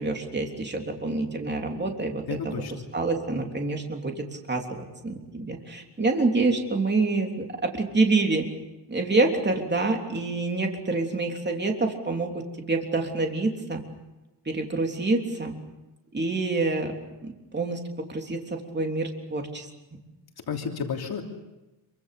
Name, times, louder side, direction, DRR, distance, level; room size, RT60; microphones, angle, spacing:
voice 1, 0.0-8.5 8.9-13.8 14.5-15.6 16.1-16.9 17.2-20.0, right 3 dB, 25° right, 2 dB, 3.4 m, -27 dB
voice 2, 2.3-2.7 20.5-21.2, left 6 dB, 60° left, 2 dB, 3.1 m, -31 dB
26.5 x 24.5 x 6.8 m, 1.0 s
wide cardioid pair, 130°, 43 cm